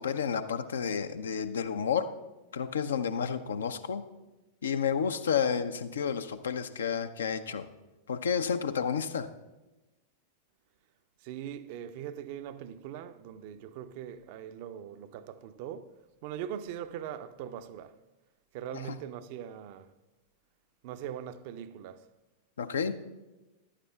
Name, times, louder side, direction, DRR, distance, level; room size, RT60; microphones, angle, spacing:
voice 1, 0.0-2.1 2.5-4.0 4.6-7.7 8.1-9.3 18.7-18.8 22.6-23.0, left 7 dB, 65° left, 0.5 m, -31 dB
voice 2, 11.2-15.9 16.2-18.0 18.5-19.9 20.8-22.0, right 9 dB, 50° right, 0.5 m, -41 dB
14.5 x 11.0 x 2.3 m
figure-of-eight pair, 90°, 0 cm